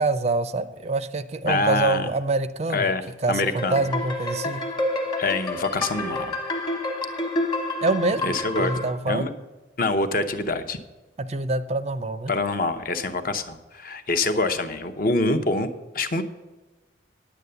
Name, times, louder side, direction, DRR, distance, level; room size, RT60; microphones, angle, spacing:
voice 1, 0.0-2.9 3.2-4.6 7.8-8.3 8.6-9.3 11.2-12.3, right 3 dB, 35° right, 13 dB, 0.4 m, -25 dB
voice 2, 1.4-2.1 2.7-3.0 3.3-3.9 5.2-6.4 8.2-8.7 9.1-9.3 9.8-10.8 12.3-15.7 15.9-16.2, left 2 dB, 45° left, 9 dB, 0.8 m, -25 dB
sound 1, 3.4-8.9, left 2 dB, 25° left, 1.2 m, -29 dB
10.0 x 8.1 x 6.8 m, 1.2 s
head